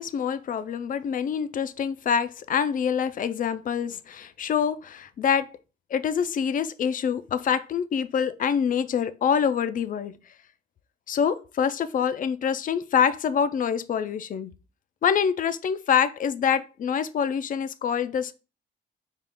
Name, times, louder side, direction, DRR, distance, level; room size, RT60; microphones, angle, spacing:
voice 1, 0.0-5.5 5.9-10.1 11.1-14.5 15.0-18.3, left 7 dB, 45° left, 0.4 m, -25 dB
3.6 x 2.4 x 3.4 m
cardioid pair, 90°, 20 cm